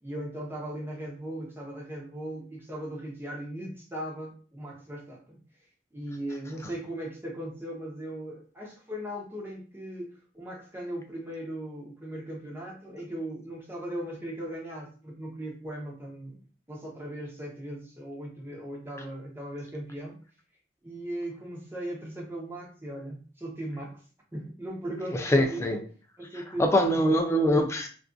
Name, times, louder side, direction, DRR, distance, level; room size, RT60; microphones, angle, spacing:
voice 1, 0.0-5.4 5.9-20.2 20.8-24.0 24.3-25.7 26.2-26.9, right 1 dB, 15° right, 0.7 m, -38 dB
voice 2, 25.1-25.8 26.6-27.9, equal, 15° left, 0.4 m, -23 dB
2.5 x 2.4 x 2.2 m
head